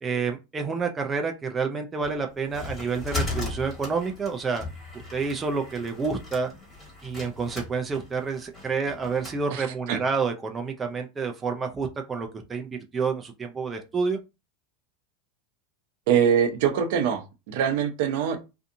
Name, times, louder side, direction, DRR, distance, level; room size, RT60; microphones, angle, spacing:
voice 1, 0.0-4.6 5.1-6.5 7.0-14.2, right 5 dB, 20° right, 3 dB, 0.4 m, -29 dB
sound 1, 2.0-9.4, left 3 dB, 25° left, 1.5 m, -37 dB
voice 2, 16.1-18.4, right 8 dB, 65° right, 6 dB, 0.6 m, -23 dB
2.6 x 2.4 x 2.6 m, 0.27 s
supercardioid pair, 125°, 0 cm